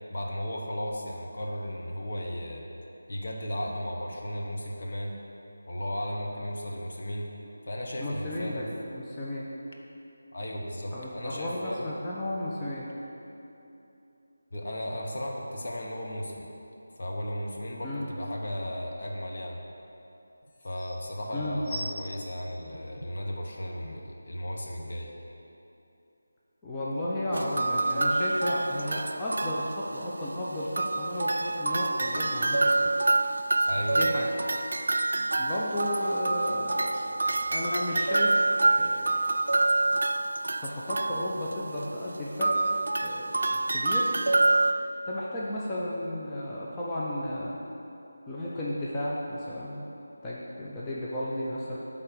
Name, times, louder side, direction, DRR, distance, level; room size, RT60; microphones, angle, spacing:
voice 1, 0.1-2.7 3.1-5.2 5.7-7.3 7.6-8.7 10.3-12.0 14.5-16.5 17.0-19.6 20.6-25.1 33.7-34.0, equal, 50° left, -1 dB, 1.1 m, -35 dB
voice 2, 8.0-8.6 8.9-9.5 10.9-12.9 17.8-18.1 21.3-21.6 26.6-32.9 33.9-34.3 35.4-39.2 40.1-40.2 40.5-42.6 43.0-44.2 45.1-47.6 48.3-49.8 50.2-51.8, left 1 dB, 15° left, -7 dB, 0.7 m, -34 dB
sound 1, 20.0-20.1 20.4-20.9 21.6-23.3 24.0-24.1, equal, 30° left, 1.7 m, -41 dB
sound 2, 27.3-30.4 30.8-44.7, right 2 dB, 65° right, 0.3 m, -27 dB
8.5 x 3.7 x 6.7 m, 2.9 s
figure-of-eight pair, 160°, 0 cm